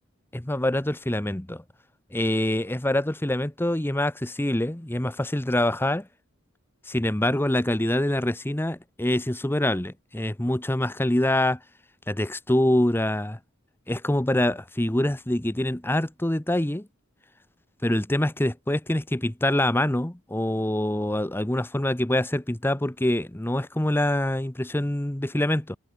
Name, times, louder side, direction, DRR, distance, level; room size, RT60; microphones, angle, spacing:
voice 1, 0.3-1.6 2.1-6.1 6.9-11.6 12.1-13.4 13.9-16.9 17.8-25.8, left 1 dB, 10° left, 0.8 m, -25 dB
head